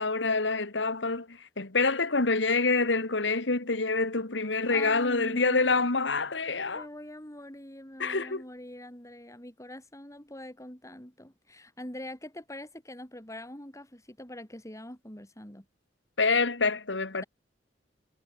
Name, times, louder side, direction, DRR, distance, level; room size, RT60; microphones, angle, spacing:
voice 1, 0.0-6.9 8.0-8.4 16.2-17.2, left 3 dB, 80° left, 2.1 m, -27 dB
voice 2, 4.7-5.9 6.7-15.7, left 1 dB, 15° left, 4.5 m, -43 dB
head